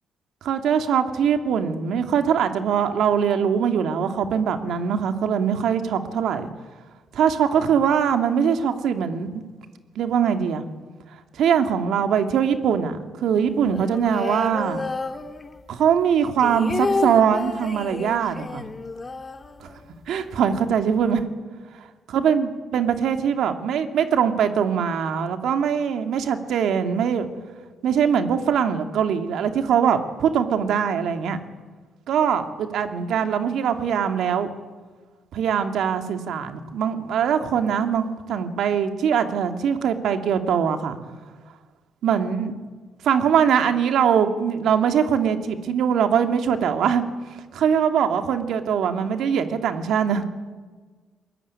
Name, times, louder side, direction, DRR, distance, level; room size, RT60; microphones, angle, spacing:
voice 1, 0.4-6.5 7.1-9.4 10.0-10.6 11.4-14.8 15.7-18.6 19.6-19.7 20.1-21.2 22.1-27.3 27.8-31.4 32.1-34.5 35.3-41.0 42.0-42.5 43.0-47.0 47.5-50.3, right 7 dB, 75° right, 7 dB, 2.5 m, -22 dB
sound 1, 13.6-15.8 16.1-20.1 20.3-20.4 20.7-21.2, left 3 dB, 30° left, 1.8 m, -30 dB
23.0 x 21.5 x 9.7 m, 1.4 s
cardioid pair, 90°, 0 cm